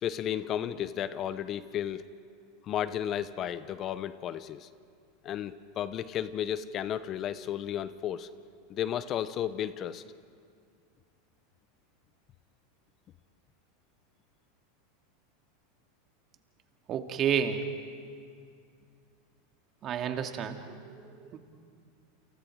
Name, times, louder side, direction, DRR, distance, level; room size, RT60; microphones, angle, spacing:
voice 1, 0.0-2.0 2.6-4.7 5.2-8.3 8.7-10.0, left 10 dB, 40° left, 14 dB, 0.9 m, -33 dB
voice 2, 16.9-17.6 19.8-21.0 21.3-21.4, right 8 dB, 40° right, 5 dB, 2.3 m, -30 dB
29.0 x 28.0 x 4.8 m, 2.3 s
hypercardioid pair, 105°, 0 cm